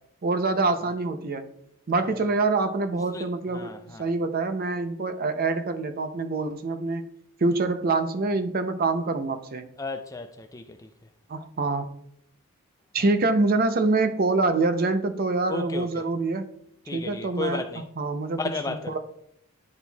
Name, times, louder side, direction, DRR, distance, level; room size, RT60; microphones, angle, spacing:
voice 1, 0.2-1.5 1.9-7.1 7.4-9.7 11.3-11.9 12.9-16.5 16.9-17.6 18.0-18.4 18.7-19.0, right 3 dB, 40° right, 0.5 m, -25 dB
voice 2, 3.5-4.1 9.8-10.9 15.5-15.9 16.9-17.8 18.4-19.0, left 3 dB, 15° left, 0.3 m, -33 dB
10.5 x 4.3 x 2.3 m
head